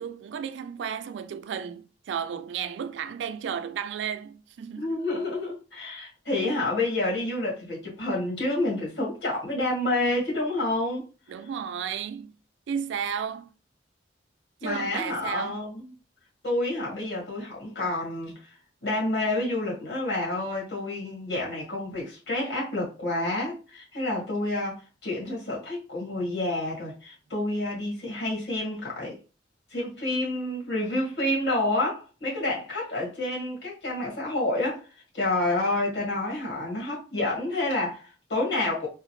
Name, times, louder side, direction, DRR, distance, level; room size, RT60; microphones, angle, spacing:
voice 1, 0.0-4.9 11.3-12.3 12.7-13.5 14.6-15.6, right 7 dB, 85° right, 0.3 m, -33 dB
voice 2, 4.7-11.1 14.6-15.8 16.4-18.5 18.8-29.2 29.7-34.8 35.1-38.9, left 2 dB, 65° left, 1.7 m, -29 dB
3.7 x 2.1 x 2.9 m
head